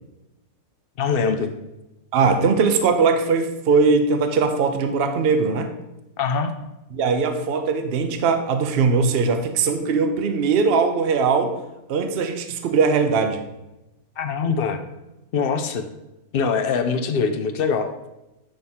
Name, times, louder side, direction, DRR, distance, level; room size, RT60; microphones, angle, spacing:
voice 1, 1.0-1.5 6.2-6.5 14.2-14.8 15.3-15.9 16.3-18.0, left 5 dB, 55° left, 7 dB, 0.6 m, -23 dB
voice 2, 2.1-5.7 6.9-11.5 11.9-13.4, right 5 dB, 50° right, 7 dB, 0.8 m, -20 dB
10.5 x 3.6 x 4.4 m, 0.96 s
omnidirectional pair, 1.5 m